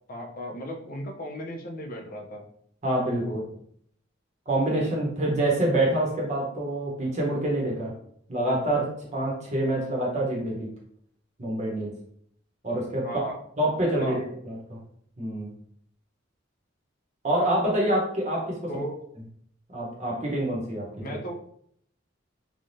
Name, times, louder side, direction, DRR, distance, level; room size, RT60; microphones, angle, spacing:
voice 1, 0.1-2.5 3.2-3.5 13.0-13.4 14.0-14.2 18.7-19.0 21.0-21.3, equal, 45° left, 1 dB, 0.6 m, -36 dB
voice 2, 2.8-3.2 4.5-7.9 8.3-10.7 11.4-11.9 12.6-13.1 13.6-14.8 15.2-15.5 17.2-18.7 19.7-21.2, right 1 dB, 35° right, -2 dB, 0.9 m, -26 dB
3.2 x 2.3 x 2.6 m, 0.67 s
head